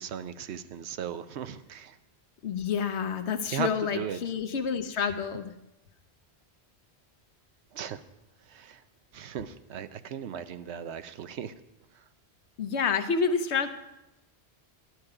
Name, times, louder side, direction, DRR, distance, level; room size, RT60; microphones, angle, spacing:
voice 1, 0.0-2.0 3.5-3.7 3.9-4.2 7.7-8.0 8.5-8.8 9.1-11.5, right 8 dB, 85° right, 11 dB, 1.0 m, -37 dB
voice 2, 2.4-5.5 12.6-13.7, left 6 dB, 85° left, 9 dB, 1.1 m, -28 dB
12.5 x 10.5 x 4.8 m, 0.94 s
omnidirectional pair, 1.1 m